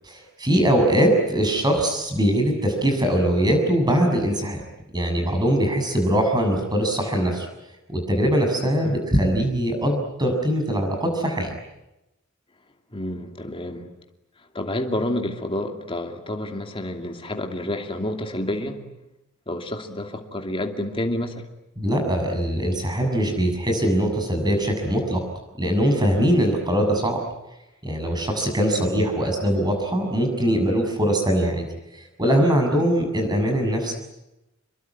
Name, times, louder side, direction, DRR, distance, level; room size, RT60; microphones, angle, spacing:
voice 1, 0.1-4.6 4.9-7.5 7.9-11.5 21.8-25.2 25.6-27.2 27.8-31.7 31.9-33.9, equal, 20° right, 7.1 m, -22 dB
voice 2, 12.9-13.9 14.5-18.9 19.5-21.4 28.6-28.9, left 1 dB, 25° left, 2.6 m, -29 dB
27.5 x 22.5 x 9.6 m
head